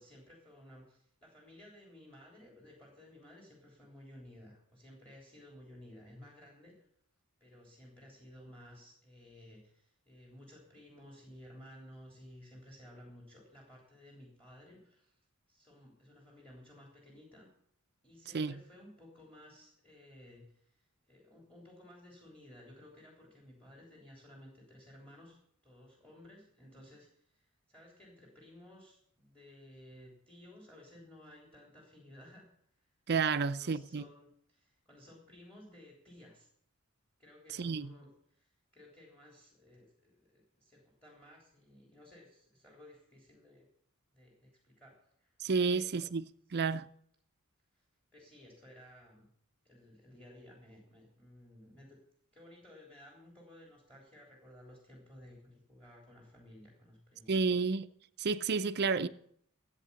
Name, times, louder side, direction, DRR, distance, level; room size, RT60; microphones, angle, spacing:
voice 1, 0.0-6.7 7.4-15.2 15.5-17.5 18.0-32.4 33.3-36.5 37.2-43.7 44.1-44.9 45.2-45.4 45.7-46.1 47.7-47.9 48.1-49.2 49.6-52.0 52.3-57.6, left 1 dB, 5° left, 3.5 m, -56 dB
voice 2, 33.1-34.0 37.6-37.9 45.4-46.2 46.5-46.9 57.3-57.9 58.2-59.1, right 5 dB, 50° right, 0.5 m, -30 dB
14.0 x 8.4 x 6.9 m
head